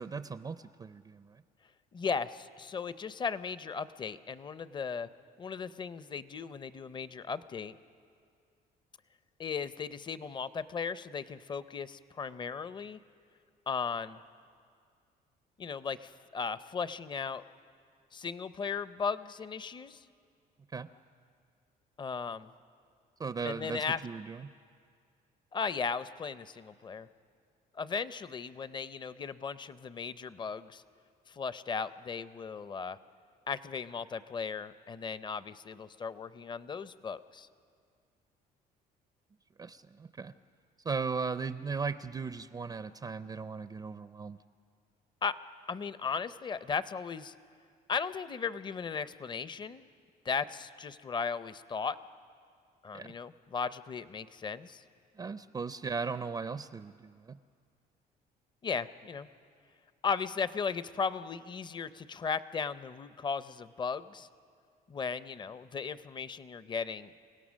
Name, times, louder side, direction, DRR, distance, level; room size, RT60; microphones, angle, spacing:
voice 1, 0.0-1.4 20.7-20.9 23.2-24.5 39.6-40.3 40.8-44.4 52.9-53.1 55.2-57.4, right 5 dB, 25° right, 12 dB, 0.5 m, -37 dB
voice 2, 1.9-5.1 5.4-7.7 9.4-13.0 13.7-14.2 15.6-17.4 18.1-20.0 22.0-22.5 23.4-24.0 25.5-27.1 27.7-30.8 31.3-33.0 33.5-37.5 45.2-45.4 45.7-47.3 47.9-49.8 50.2-52.0 52.8-54.8 58.6-59.3 60.0-64.3 64.9-67.1, left 5 dB, 25° left, 15 dB, 0.6 m, -36 dB
29.0 x 17.0 x 6.3 m, 2.2 s
cardioid pair, 110°, 17 cm